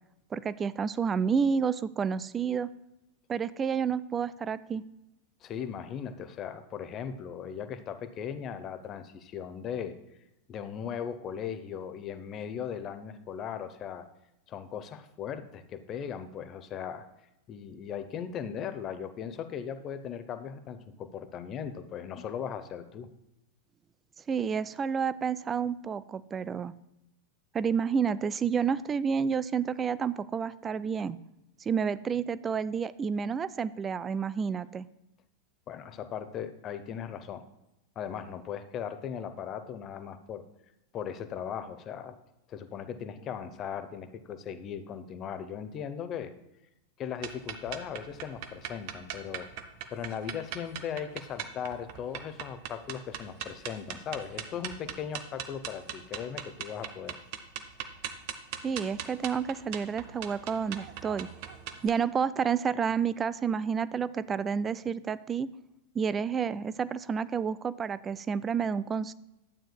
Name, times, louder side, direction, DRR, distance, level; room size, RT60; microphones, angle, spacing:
voice 1, 0.3-2.7 3.3-4.8 24.3-26.7 27.5-31.2 31.7-34.9 58.6-61.3 61.8-65.5 65.9-69.1, right 6 dB, 20° right, 17 dB, 0.3 m, -30 dB
voice 2, 5.4-10.0 10.5-14.0 14.5-17.1 17.5-23.1 35.7-37.4 38.0-40.4 40.9-42.2 42.5-46.3 47.0-49.5 49.9-57.1, left 8 dB, 30° left, 10 dB, 0.7 m, -38 dB
sound 1, 47.2-61.9, right 9 dB, 45° right, 0.7 m, -40 dB
12.0 x 8.8 x 2.3 m, 0.89 s
figure-of-eight pair, 90°, 0 cm